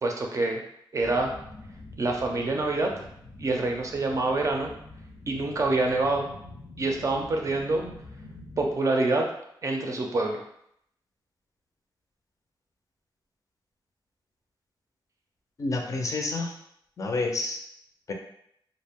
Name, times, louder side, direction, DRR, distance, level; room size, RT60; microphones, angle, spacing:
voice 1, 0.0-0.6 0.9-1.3 2.0-2.9 3.4-4.7 5.3-6.2 6.8-7.8 8.6-9.3 9.6-10.4, right 2 dB, 40° right, 2 dB, 0.5 m, -26 dB
sound 1, 1.0-8.7, left 2 dB, 85° left, 0.6 m, -46 dB
voice 2, 15.6-16.5 17.0-17.6 18.1-18.2, left 3 dB, 40° left, 2 dB, 0.5 m, -29 dB
2.4 x 2.0 x 3.4 m, 0.73 s
wide cardioid pair, 130°, 9 cm